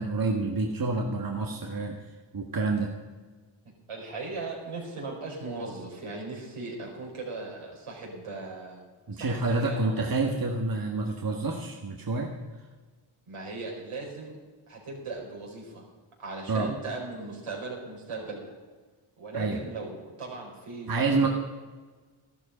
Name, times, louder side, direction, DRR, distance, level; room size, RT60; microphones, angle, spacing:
voice 1, 0.0-2.0 2.3-2.9 9.1-12.3 16.5-16.7 19.3-19.6 20.9-21.3, right 3 dB, 45° right, 1 dB, 1.7 m, -28 dB
voice 2, 3.9-8.8 9.1-10.2 13.3-14.4 14.7-15.8 16.2-18.5 19.2-21.3, right 3 dB, 75° right, -2 dB, 5.1 m, -38 dB
13.0 x 12.5 x 5.1 m, 1.4 s
cardioid pair, 60°, 50 cm